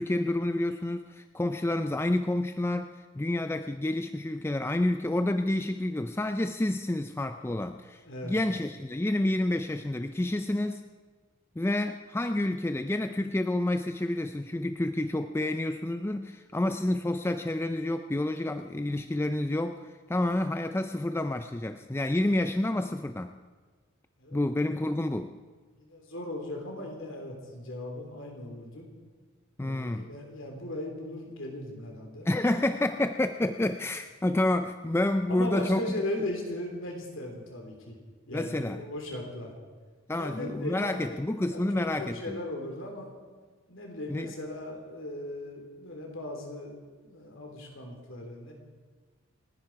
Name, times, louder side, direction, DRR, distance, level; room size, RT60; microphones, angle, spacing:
voice 1, 0.0-10.8 11.6-23.3 24.3-25.3 29.6-30.1 32.2-35.8 38.3-38.8 40.1-42.4 44.1-44.3, left 1 dB, 10° left, 8 dB, 0.4 m, -29 dB
voice 2, 8.0-8.5 24.2-24.7 25.8-28.9 29.6-32.3 35.3-38.0 38.3-39.6 40.2-41.2 41.5-43.1 43.7-46.7 47.0-48.5, left 1 dB, 60° left, 1 dB, 3.5 m, -38 dB
29.5 x 10.5 x 4.7 m, 1.5 s
head